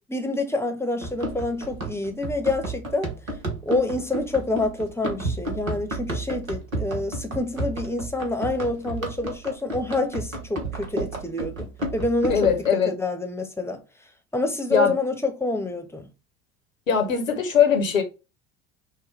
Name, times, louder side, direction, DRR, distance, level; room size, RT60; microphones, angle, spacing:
voice 1, 0.1-3.1 3.6-13.8 14.3-16.1, left 2 dB, 5° left, 0.8 m, -27 dB
Run, 1.0-12.7, right 2 dB, 85° right, 1.1 m, -32 dB
voice 2, 12.3-12.9 14.7-14.9 16.9-18.0, left 7 dB, 80° left, 1.1 m, -20 dB
6.1 x 2.2 x 3.3 m
figure-of-eight pair, 65°, 40 cm